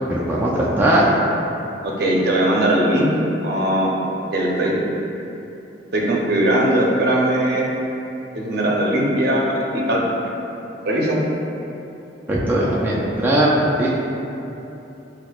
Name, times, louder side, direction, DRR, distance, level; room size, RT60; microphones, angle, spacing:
voice 1, 0.1-1.1 12.3-13.9, right 1 dB, 10° right, -6 dB, 0.3 m, -19 dB
voice 2, 1.8-3.1 3.4-3.9 4.3-4.8 5.9-7.6 8.3-10.0 10.8-11.2, right 1 dB, 60° right, -3 dB, 0.6 m, -19 dB
6.1 x 2.0 x 2.3 m, 2.9 s
head